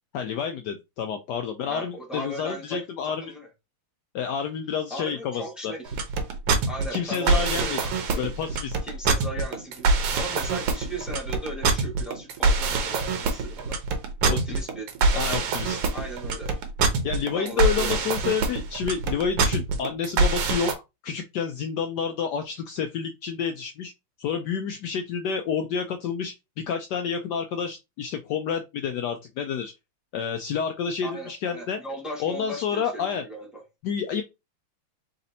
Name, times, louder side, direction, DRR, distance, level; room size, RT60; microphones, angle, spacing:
voice 1, 0.1-3.3 4.1-5.7 6.9-7.8 8.2-8.8 14.3-14.4 15.1-15.8 17.0-20.7 21.0-23.9 24.2-26.3 26.7-29.7 30.1-31.8 32.2-33.2 33.8-34.2, left 7 dB, 85° left, 0.9 m, -29 dB
voice 2, 1.6-3.5 4.9-6.0 6.7-8.2 8.8-13.8 14.2-16.5 17.3-18.0 31.0-33.6, right 1 dB, ahead, 1.1 m, -37 dB
sound 1, 5.9-20.7, right 3 dB, 90° right, 1.8 m, -24 dB
4.1 x 4.0 x 2.8 m
omnidirectional pair, 2.4 m